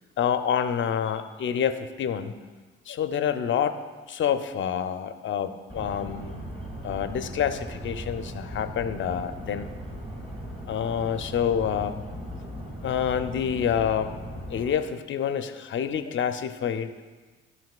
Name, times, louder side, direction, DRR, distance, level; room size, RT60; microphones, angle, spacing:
voice 1, 0.2-2.4 2.9-3.8 4.1-6.4 6.8-9.7 10.7-12.1 12.8-14.1 14.5-17.0, left 8 dB, 40° left, 10 dB, 0.6 m, -27 dB
sound 1, 5.7-14.7, equal, 20° right, 1.9 m, -38 dB
12.0 x 5.7 x 2.4 m, 1.3 s
hypercardioid pair, 55°, 31 cm